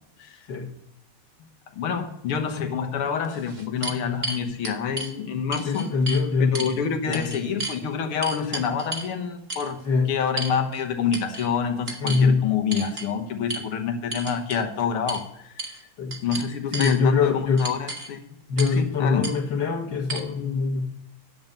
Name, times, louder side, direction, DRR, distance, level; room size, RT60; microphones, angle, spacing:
voice 1, 1.7-5.9 6.5-9.8 10.1-15.8 16.2-18.2 18.7-19.2, left 7 dB, 80° left, 5 dB, 2.1 m, -27 dB
sound 1, 2.6-2.7 3.2-5.1 5.5-6.2 6.5-6.8 7.1-7.8 8.2-9.1 9.5-9.7 10.4-10.8 11.1-11.5 11.9-12.3 12.7-13.1 13.5-13.6 14.1-14.6 15.1-15.2 15.6-15.8 16.1-17.0 17.6-18.1 18.6-18.8 19.2-19.3 20.1-20.2, right 2 dB, 30° right, 1.4 m, -33 dB
voice 2, 5.3-7.5 9.9-10.1 12.0-12.5 16.0-16.2 16.7-17.7 18.5-20.9, left 4 dB, 55° left, 2 dB, 2.2 m, -23 dB
10.5 x 7.4 x 5.3 m, 0.80 s
omnidirectional pair, 2.4 m